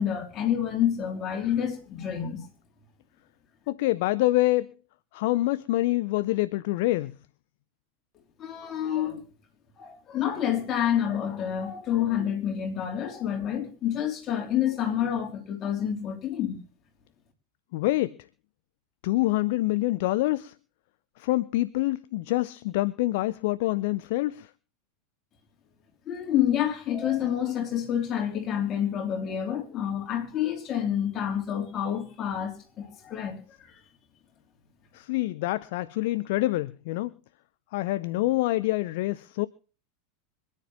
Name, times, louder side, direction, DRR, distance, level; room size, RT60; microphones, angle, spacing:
voice 1, 0.0-2.5 8.4-9.2 9.8-16.6 26.1-33.4, left 10 dB, 35° left, 3.5 m, -28 dB
voice 2, 3.7-4.7 5.1-7.1 17.7-18.2 19.0-20.5 21.2-24.5 34.9-37.1 37.7-39.5, left 18 dB, 55° left, 0.5 m, -26 dB
26.0 x 9.9 x 3.0 m
figure-of-eight pair, 80°, 0 cm